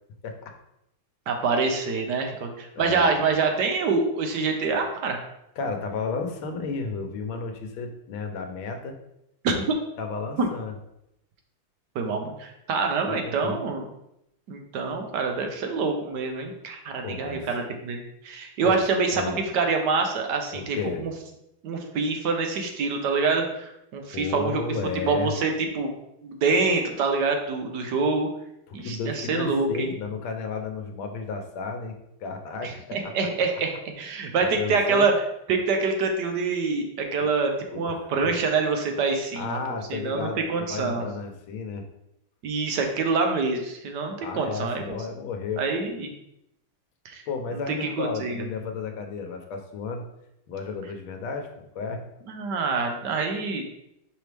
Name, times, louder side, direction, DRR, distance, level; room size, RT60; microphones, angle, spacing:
voice 1, 0.2-0.5 2.7-3.2 5.6-9.0 10.0-10.7 13.1-13.6 17.0-17.5 18.6-18.8 19.1-19.4 20.5-21.0 24.1-25.3 28.7-33.0 34.1-35.1 37.2-37.3 37.7-38.3 39.3-41.9 44.2-45.8 47.3-50.0 50.5-52.0, left 4 dB, 90° left, 4 dB, 1.6 m, -33 dB
voice 2, 1.3-5.2 9.4-9.7 10.4-10.5 11.9-13.8 14.5-21.1 21.6-24.7 25.0-25.9 26.2-28.3 28.7-29.9 32.6-33.7 34.0-35.1 35.5-39.6 39.9-41.1 42.4-45.0 45.6-46.1 47.0-47.2 47.8-48.4 52.3-53.7, right 4 dB, 65° right, 4 dB, 1.4 m, -26 dB
6.2 x 4.7 x 3.4 m, 0.82 s
omnidirectional pair, 2.2 m